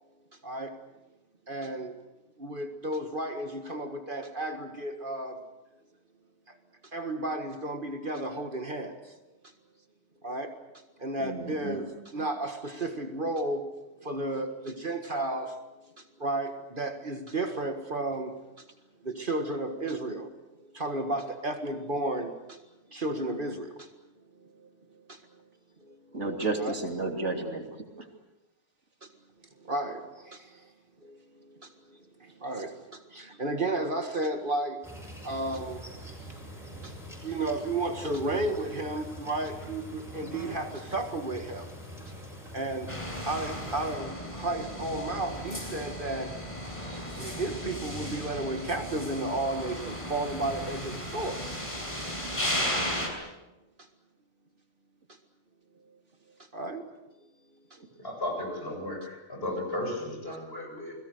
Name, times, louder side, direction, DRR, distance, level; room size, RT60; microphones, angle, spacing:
voice 1, 0.4-0.8 1.5-1.9 2.4-5.4 6.5-6.6 6.9-9.1 9.4-9.5 10.2-10.6 11.0-13.7 14.0-15.6 16.0-18.7 19.0-20.3 20.6-22.6 22.9-23.9 24.4-25.2 25.8-26.2 26.6-26.7 29.0-29.1 29.6-30.7 31.0-34.9 35.2-35.9 36.2-36.9 37.2-41.7 42.5-42.9 43.3-46.4 47.2-51.4 53.8-53.9 55.1-55.2 56.4-56.9 57.7-57.8, right 2 dB, 45° right, 6 dB, 1.9 m, -33 dB
voice 2, 11.2-11.8 26.1-27.6, right 2 dB, 75° right, 3 dB, 3.4 m, -31 dB
sound 1, 34.8-44.0, equal, ahead, 7.6 m, -44 dB
sound 2, 42.9-53.1, equal, 25° left, 5.4 m, -35 dB
voice 3, 58.0-61.0, left 1 dB, 55° left, 1 dB, 7.4 m, -34 dB
30.0 x 21.0 x 6.7 m, 1.0 s
omnidirectional pair, 1.2 m